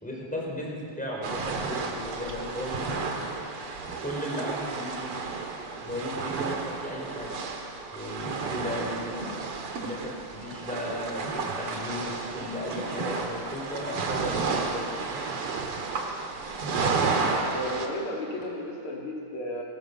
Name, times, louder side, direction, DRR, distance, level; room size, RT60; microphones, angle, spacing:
voice 1, 0.0-3.1 4.0-5.2 5.8-7.4 7.9-9.3 9.8-14.8 18.4-18.5, left 1 dB, 5° left, -3 dB, 4.5 m, -36 dB
sound 1, 1.2-17.9, right 4 dB, 85° right, 2.6 m, -32 dB
voice 2, 17.3-19.6, equal, 75° left, -1 dB, 3.5 m, -34 dB
21.5 x 19.0 x 6.8 m, 2.4 s
omnidirectional pair, 2.4 m